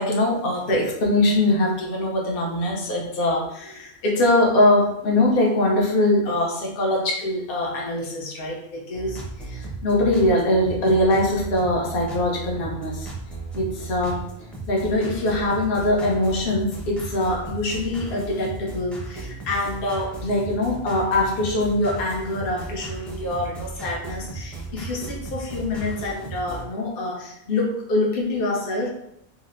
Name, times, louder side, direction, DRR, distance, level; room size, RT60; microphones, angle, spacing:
voice 1, 0.0-13.1 13.5-14.2 14.7-28.9, left 1 dB, 55° left, -1 dB, 0.9 m, -23 dB
sound 1, 8.9-26.7, right 3 dB, ahead, 0.5 m, -35 dB
4.2 x 2.0 x 2.5 m, 0.76 s
omnidirectional pair, 1.3 m